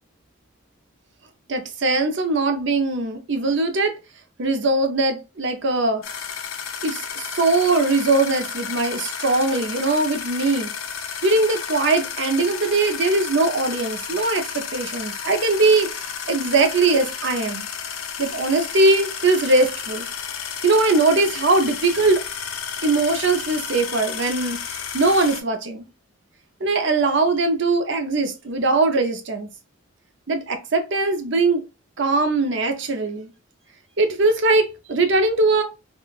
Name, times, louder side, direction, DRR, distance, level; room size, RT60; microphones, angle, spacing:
voice 1, 1.5-4.0 4.4-6.0 6.8-10.7 11.2-16.0 16.3-17.7 18.2-20.1 20.6-22.2 22.8-25.9 26.6-29.5 30.3-31.6 32.0-33.3 34.0-35.6, right 3 dB, 60° right, 0.6 m, -21 dB
sound 1, 6.0-25.4, left 7 dB, 90° left, 0.5 m, -32 dB
3.6 x 2.3 x 2.4 m
head